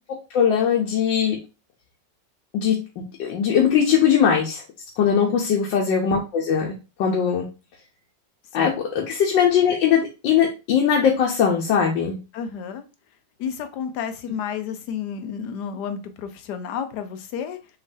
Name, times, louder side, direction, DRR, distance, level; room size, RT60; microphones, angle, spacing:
voice 1, 0.3-1.4 2.5-4.6 5.0-7.5 8.5-12.2, left 7 dB, 85° left, 1.5 m, -20 dB
voice 2, 5.0-5.4 7.1-7.3 8.6-8.8 12.3-12.8 13.4-17.6, left 7 dB, 70° left, 1.2 m, -31 dB
6.3 x 3.0 x 2.6 m
omnidirectional pair, 2.0 m